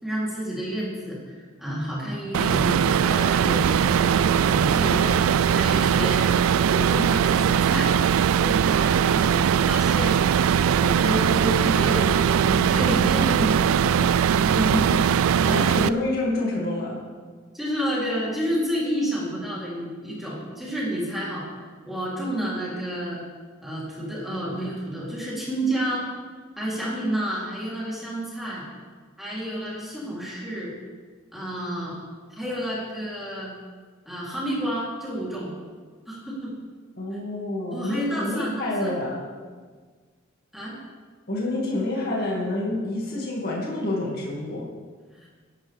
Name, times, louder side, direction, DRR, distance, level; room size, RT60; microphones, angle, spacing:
voice 1, 0.0-6.3 6.6-8.0 8.4-10.2 10.7-14.1 14.4-15.0 15.4-15.6 17.5-21.5 21.8-23.2 23.6-26.1 26.6-28.6 29.2-30.7 31.3-32.0 32.3-33.5 34.0-35.5 36.1-36.5 37.7-38.9 40.5-40.8 45.2-45.3, equal, ahead, -8 dB, 3.4 m, -30 dB
sound 1, 2.3-15.9, right 8 dB, 90° right, 0.3 m, -20 dB
voice 2, 15.4-17.0 37.0-39.2 41.3-44.7, left 1 dB, 50° left, -3 dB, 2.3 m, -27 dB
16.0 x 12.0 x 3.6 m, 1.5 s
head